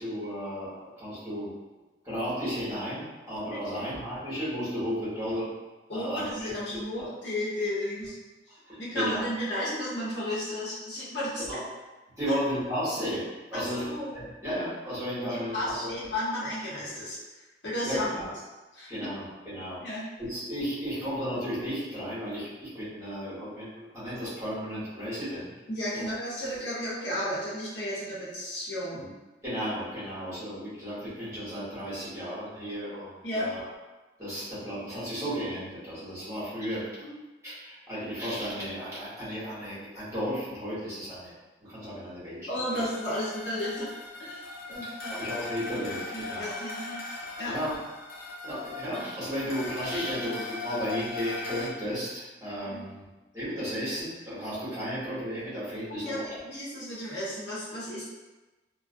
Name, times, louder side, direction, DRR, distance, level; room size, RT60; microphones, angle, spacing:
voice 1, 0.0-1.5 2.0-5.5 5.9-6.2 6.7-7.1 8.7-9.2 11.5-11.6 12.2-15.9 17.8-18.3 18.9-25.5 25.9-26.1 29.4-33.7 34.2-36.9 37.4-41.3 41.6-42.6 44.7-46.5 47.5-47.8 48.4-53.0 53.3-56.4, equal, 15° right, -12 dB, 1.1 m, -34 dB
voice 2, 3.5-3.8 5.9-8.2 8.8-11.6 12.3-12.4 13.5-14.1 15.2-17.2 17.6-18.2 18.7-19.1 19.8-20.0 25.7-29.1 33.2-33.5 37.0-37.1 42.5-43.9 44.2-44.4 44.7-45.1 46.1-47.0 47.4-47.5 52.6-52.8 55.9-58.0, left 1 dB, 70° left, -8 dB, 0.8 m, -33 dB
sound 1, 42.7-51.7, left 3 dB, 55° left, 0.4 m, -39 dB
2.4 x 2.1 x 2.5 m, 1.2 s
head